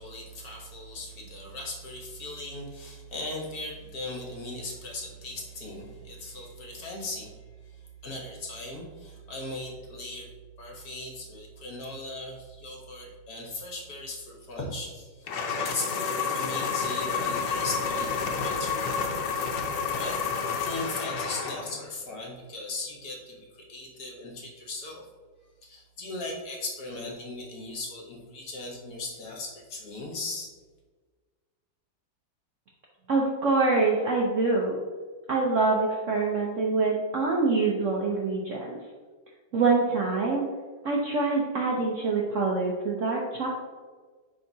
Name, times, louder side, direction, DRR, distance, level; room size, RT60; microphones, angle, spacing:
voice 1, 0.0-7.3 7.7-7.8 8.0-10.3 10.6-18.9 19.9-20.2 20.6-25.1 25.6-30.5, left 2 dB, 55° left, -1 dB, 1.5 m, -38 dB
sound 1, 15.3-21.8, left 5 dB, 70° left, 1.4 m, -30 dB
voice 2, 33.1-34.8 35.3-38.8 39.5-40.4 40.8-43.5, right 3 dB, 60° right, -2 dB, 0.8 m, -25 dB
10.5 x 3.7 x 2.7 m, 1.4 s
omnidirectional pair, 2.1 m